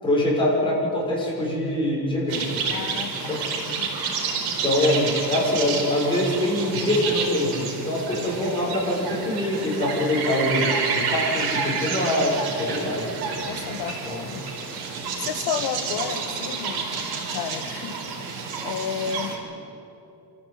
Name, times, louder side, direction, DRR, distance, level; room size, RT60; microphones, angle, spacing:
voice 1, 0.0-2.6 3.3-3.4 4.6-13.1 14.0-14.3, left 1 dB, 10° left, -5 dB, 6.4 m, -24 dB
sound 1, 2.3-19.3, right 5 dB, 65° right, 4.5 m, -29 dB
voice 2, 2.7-4.0 13.4-14.5 15.2-19.4, left 7 dB, 75° left, 8 dB, 1.6 m, -33 dB
27.0 x 14.5 x 8.6 m, 2.9 s
cardioid pair, 165°, 41 cm